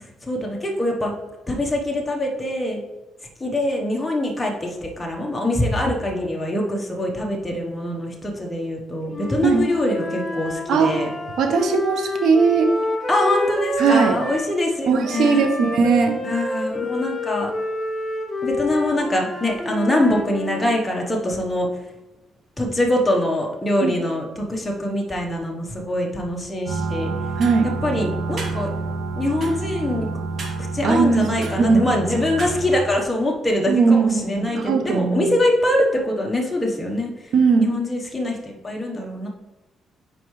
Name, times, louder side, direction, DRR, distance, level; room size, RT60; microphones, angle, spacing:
voice 1, 0.2-1.2 1.5-2.8 3.4-11.1 13.1-15.5 16.2-17.5 18.4-21.7 22.6-27.1 27.8-28.7 29.2-30.1 30.7-37.3 37.6-39.3, left 1 dB, 15° left, -1 dB, 1.1 m, -23 dB
Wind instrument woodwind instrument, 9.1-14.5 15.0-20.9, left 2 dB, 30° left, 1.4 m, -28 dB
voice 2, 10.7-11.0 11.4-12.7 13.8-14.2 14.9-16.1 23.8-24.0 27.4-27.7 30.8-31.8 33.7-35.2 37.3-37.8, right 5 dB, 75° right, 5 dB, 1.0 m, -18 dB
sound 1, 26.7-32.8, right 3 dB, 50° right, 2.0 m, -28 dB
10.0 x 4.6 x 3.2 m, 1.1 s
cardioid pair, 90°, 0 cm